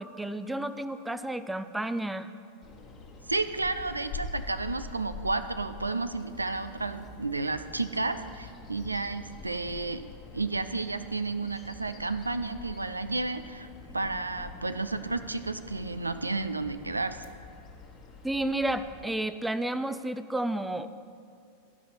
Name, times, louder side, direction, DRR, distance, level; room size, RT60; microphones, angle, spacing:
voice 1, 0.0-2.3 18.2-20.9, right 1 dB, 5° right, 11 dB, 0.4 m, -31 dB
Bird vocalization bird call bird song, 2.6-19.0, left 3 dB, 25° left, 1.2 m, -45 dB
voice 2, 3.3-10.1 10.3-13.7 13.9-17.3, right 3 dB, 80° right, 11 dB, 0.4 m, -32 dB
14.5 x 5.5 x 5.9 m, 2.3 s
figure-of-eight pair, 90°, 0 cm